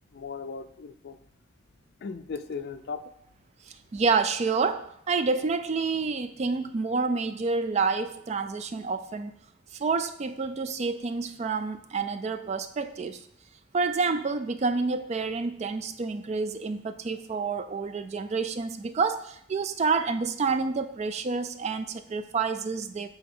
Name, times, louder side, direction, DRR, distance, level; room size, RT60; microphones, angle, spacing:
voice 1, 0.1-1.2 2.0-3.0, left 5 dB, 55° left, 10 dB, 0.4 m, -37 dB
voice 2, 3.9-9.3 9.7-13.2 13.7-23.1, right 4 dB, 35° right, 10 dB, 0.3 m, -28 dB
6.8 x 4.1 x 3.8 m, 0.69 s
head